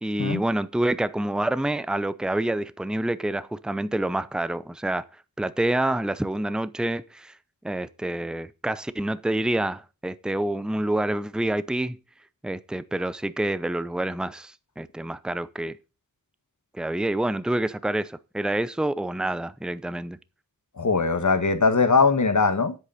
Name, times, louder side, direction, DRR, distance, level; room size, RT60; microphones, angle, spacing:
voice 1, 0.0-5.0 5.4-7.3 7.6-12.0 12.4-15.8 16.7-20.2, right 1 dB, ahead, 0.7 m, -27 dB
voice 2, 20.8-22.8, left 4 dB, 55° left, 1.5 m, -21 dB
9.7 x 8.4 x 5.6 m
wide cardioid pair, 70°, 35 cm